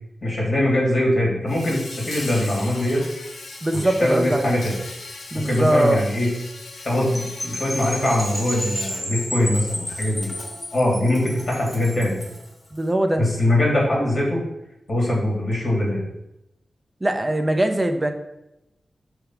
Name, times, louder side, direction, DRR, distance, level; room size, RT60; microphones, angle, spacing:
voice 1, 0.2-3.0 3.7-4.7 5.3-6.3 6.8-10.3 10.7-12.2 13.2-14.4 14.9-16.0, left 1 dB, 45° left, -2 dB, 2.3 m, -22 dB
Insect, 1.5-12.9, left 3 dB, 90° left, 1.2 m, -39 dB
voice 2, 3.6-4.6 5.3-6.0 12.7-13.2 17.0-18.1, right 1 dB, 15° right, 5 dB, 0.7 m, -21 dB
sound 1, 7.1-12.4, equal, 15° left, 1.4 m, -32 dB
6.0 x 3.5 x 5.8 m, 0.88 s
wide cardioid pair, 140°, 0 cm